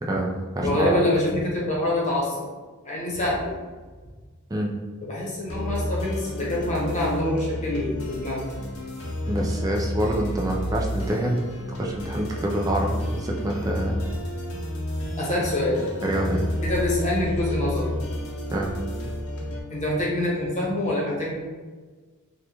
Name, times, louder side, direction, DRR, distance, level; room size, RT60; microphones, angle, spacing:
voice 1, 0.0-1.2 4.5-4.7 9.3-11.5 11.8-14.0 16.0-16.5 18.5-18.7, right 1 dB, 15° right, -1 dB, 0.3 m, -26 dB
voice 2, 0.6-2.5 2.8-3.5 5.0-8.5 15.2-15.8 16.6-17.9 19.7-21.3, left 1 dB, 35° left, -4 dB, 0.9 m, -25 dB
sound 1, 5.5-19.6, left 1 dB, 75° left, 0.7 m, -31 dB
3.6 x 2.3 x 2.9 m, 1.4 s
head